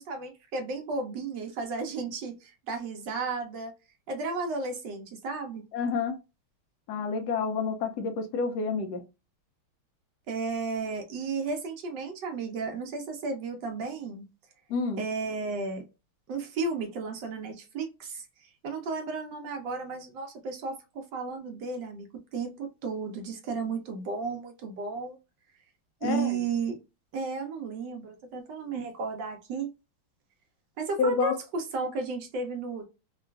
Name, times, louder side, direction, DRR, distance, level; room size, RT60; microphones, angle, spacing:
voice 1, 0.0-3.7 4.1-5.6 10.3-14.2 15.0-15.8 16.3-22.1 22.3-25.2 26.0-26.8 27.1-29.7 30.8-32.8, right 4 dB, 65° right, 1.2 m, -33 dB
voice 2, 5.7-6.2 6.9-9.0 14.7-15.0 26.0-26.4 31.0-31.4, left 5 dB, 75° left, 0.9 m, -29 dB
3.7 x 2.4 x 2.3 m
omnidirectional pair, 2.4 m